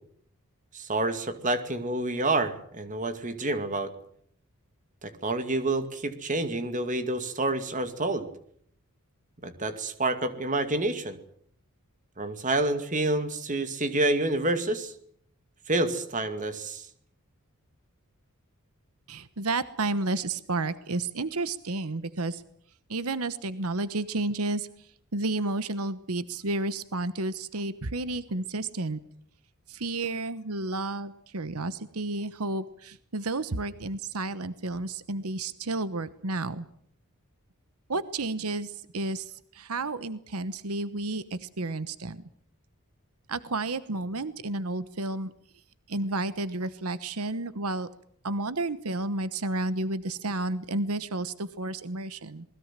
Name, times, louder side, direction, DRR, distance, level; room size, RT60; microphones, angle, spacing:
voice 1, 0.7-3.9 5.0-8.3 9.4-11.2 12.2-14.9 15.7-16.9, right 2 dB, 35° right, 9 dB, 2.3 m, -28 dB
voice 2, 19.1-22.4 22.9-24.7 25.1-29.0 29.7-36.6 37.9-42.3 43.3-45.3 45.9-47.9 48.2-52.4, right 2 dB, 80° right, 14 dB, 1.1 m, -31 dB
27.0 x 20.5 x 7.5 m, 0.65 s
head